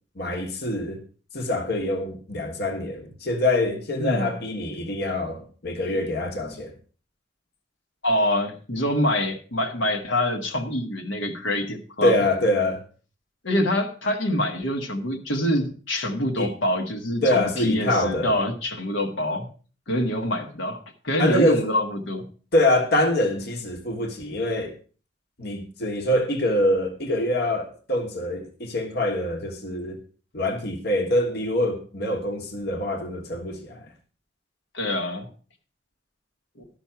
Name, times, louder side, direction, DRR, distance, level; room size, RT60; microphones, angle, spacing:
voice 1, 0.2-1.0 1.3-6.7 12.0-12.8 16.4-16.5 17.2-18.4 21.2-21.7 22.5-24.7 25.4-30.0 30.3-33.8, left 1 dB, 60° left, 1.5 m, -25 dB
voice 2, 4.0-4.3 8.0-12.2 13.4-19.5 19.9-22.2 34.7-35.3, left 1 dB, 85° left, 1.6 m, -25 dB
12.0 x 6.2 x 5.8 m
head